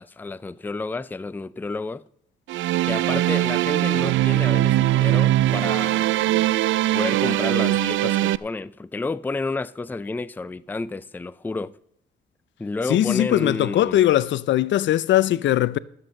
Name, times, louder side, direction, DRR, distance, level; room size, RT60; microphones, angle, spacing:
voice 1, 0.0-2.1 2.9-6.5 6.9-11.8 12.6-14.0, left 3 dB, 10° left, 0.4 m, -30 dB
sound 1, 2.5-8.4, right 15 dB, 75° right, 0.4 m, -21 dB
voice 2, 12.9-15.8, left 13 dB, 70° left, 0.5 m, -20 dB
13.5 x 7.7 x 6.5 m
cardioid pair, 90°, 20 cm